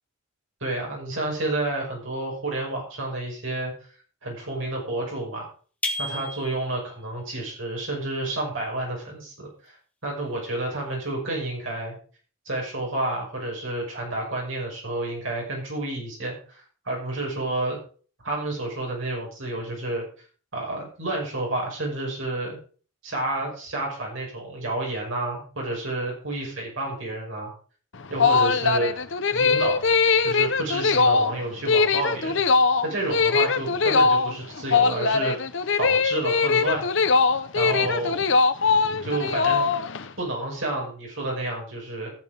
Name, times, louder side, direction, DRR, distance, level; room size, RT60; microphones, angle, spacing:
voice 1, 0.6-3.7 4.2-5.5 6.0-9.7 10.0-11.9 12.5-17.8 18.2-20.0 20.5-22.6 23.0-27.5 28.1-28.9 29.3-29.8 30.2-32.4 32.8-35.4 35.8-36.9 37.5-38.2 39.0-39.7 40.2-42.1, right 2 dB, 65° right, -2 dB, 6.2 m, -30 dB
sound 1, 5.8-6.9, left 1 dB, 5° left, 1.4 m, -31 dB
sound 2, 27.9-40.1, left 4 dB, 60° left, 0.8 m, -21 dB
14.0 x 7.1 x 5.2 m, 0.40 s
head